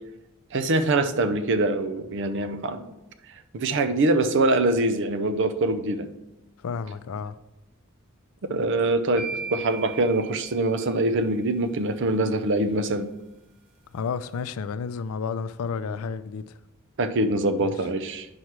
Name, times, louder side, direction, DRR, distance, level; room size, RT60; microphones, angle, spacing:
voice 1, 0.5-2.9 3.5-6.1 8.4-13.1 17.0-18.3, right 2 dB, 60° right, 0.6 m, -24 dB
voice 2, 6.6-7.4 13.9-16.4 17.6-17.7, left 5 dB, 75° left, 0.4 m, -31 dB
sound 1, 9.2-11.3, right 5 dB, 80° right, 1.9 m, -37 dB
9.5 x 3.2 x 5.8 m
head